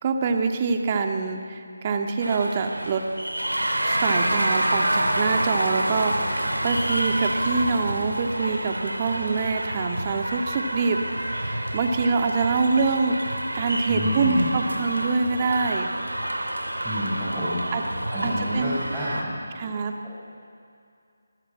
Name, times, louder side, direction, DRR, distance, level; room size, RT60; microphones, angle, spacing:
voice 1, 0.0-3.0 3.8-11.0 11.3-15.9 17.7-17.8 18.2-18.8 19.5-19.9, right 4 dB, 25° right, 5 dB, 1.8 m, -25 dB
sound 1, 2.2-19.2, right 1 dB, 80° right, 3.2 m, -28 dB
voice 2, 13.9-14.5 16.8-17.6 18.1-19.3, equal, ahead, -14 dB, 5.8 m, -28 dB
26.0 x 19.5 x 8.7 m, 2.4 s
figure-of-eight pair, 155°, 0 cm